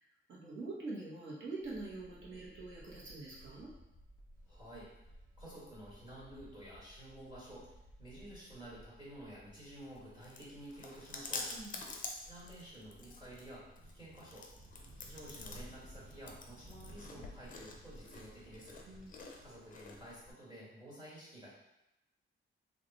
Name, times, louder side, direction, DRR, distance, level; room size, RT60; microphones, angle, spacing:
voice 1, 0.3-3.7 11.5-11.8 18.8-19.3, right 2 dB, 65° right, -6 dB, 1.2 m, -45 dB
sound 1, 1.6-9.5, equal, 15° left, 0.9 m, -58 dB
sound 2, 4.3-19.2, right 1 dB, 40° right, 0.8 m, -59 dB
voice 2, 4.5-4.9 5.4-7.7 8.0-11.5 12.2-14.5 15.0-18.8 19.4-21.5, right 1 dB, 25° right, -8 dB, 1.3 m, -51 dB
Chewing mastication, 9.6-20.3, left 3 dB, 40° left, 0.4 m, -48 dB
3.2 x 2.5 x 3.9 m, 0.89 s
wide cardioid pair, 175°, 21 cm